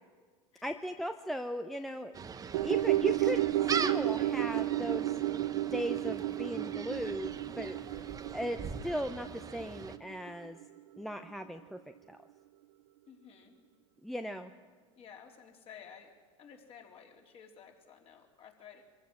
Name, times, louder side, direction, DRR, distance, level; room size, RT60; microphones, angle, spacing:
voice 1, 0.6-2.2 2.6-5.1 5.5-8.1 8.3-10.6 11.0-11.8 12.1-12.2 14.0-14.5, equal, ahead, 7 dB, 0.8 m, -38 dB
Gull seagull, 2.1-10.0, right 6 dB, 20° right, 1.0 m, -41 dB
sound 1, 2.5-11.0 11.3-11.4, right 15 dB, 70° right, 0.7 m, -32 dB
voice 2, 13.1-13.6 15.0-16.1 16.4-18.8, left 7 dB, 35° left, 1 dB, 3.7 m, -53 dB
22.5 x 15.5 x 7.7 m, 1.5 s
hypercardioid pair, 110°, 17 cm